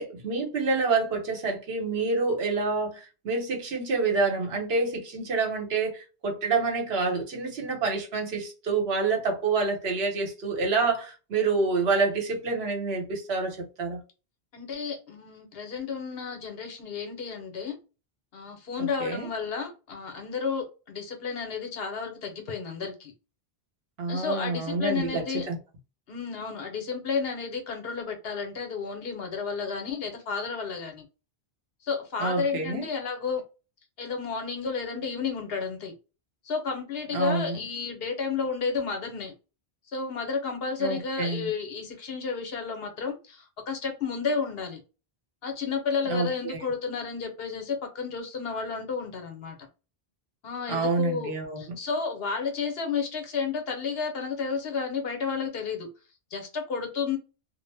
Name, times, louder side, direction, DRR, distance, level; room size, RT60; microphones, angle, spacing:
voice 1, 0.0-3.0 3.2-14.0 18.8-19.3 24.0-25.6 32.2-32.9 37.1-37.6 40.8-41.5 46.0-46.6 50.7-51.8, right 4 dB, 75° right, 1.1 m, -27 dB
voice 2, 14.5-17.8 18.3-23.1 24.1-25.5 26.1-31.1 31.8-33.4 34.0-35.9 36.4-39.3 39.9-44.8 45.4-49.7 50.4-55.9 56.3-57.2, left 5 dB, 70° left, 1.0 m, -32 dB
2.4 x 2.0 x 3.3 m
omnidirectional pair, 1.1 m